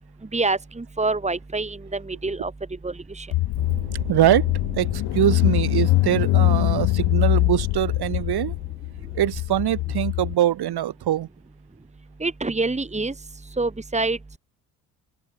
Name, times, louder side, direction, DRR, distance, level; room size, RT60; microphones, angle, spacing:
voice 1, 0.3-2.5 2.8-3.3 12.2-13.1 13.6-14.2, right 3 dB, 15° right, 3.0 m, -26 dB
Car / Engine, 3.3-10.3, left 19 dB, 65° left, 2.2 m, -23 dB
sound 1, 3.6-9.5, right 16 dB, 85° right, 3.5 m, -41 dB
voice 2, 4.1-4.5 4.7-8.6 9.1-11.3, right 12 dB, 60° right, 5.5 m, -23 dB
open air
hypercardioid pair, 50°, 43 cm